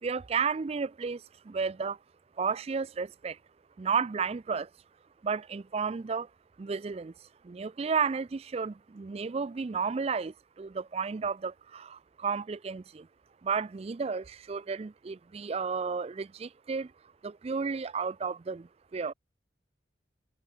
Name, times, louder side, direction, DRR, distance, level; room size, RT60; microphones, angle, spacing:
voice 1, 0.0-2.0 2.4-3.4 3.8-4.7 5.2-6.3 6.6-13.1 13.4-16.9 17.2-19.1, right 5 dB, 35° right, 0.4 m, -33 dB
head